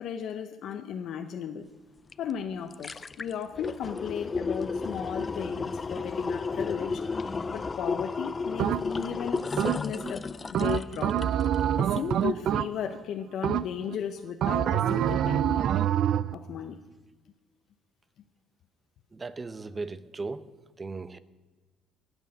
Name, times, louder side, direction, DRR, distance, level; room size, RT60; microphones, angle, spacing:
voice 1, 0.0-1.7 2.2-7.2 7.5-10.2 10.5-11.3 11.8-15.6 16.3-16.8, left 8 dB, 65° left, 5 dB, 0.8 m, -35 dB
sound 1, 2.1-2.2 2.5-11.6 12.0-12.1, left 4 dB, 30° left, 0.4 m, -33 dB
sound 2, 8.6-9.1 9.6-10.1 10.5-13.0 13.4-14.0 14.4-16.3, right 10 dB, 65° right, 0.4 m, -26 dB
voice 2, 19.1-20.4 20.8-21.2, right 3 dB, 25° right, 14 dB, 0.7 m, -37 dB
18.0 x 6.3 x 6.7 m, 1.3 s
supercardioid pair, 80°, 0 cm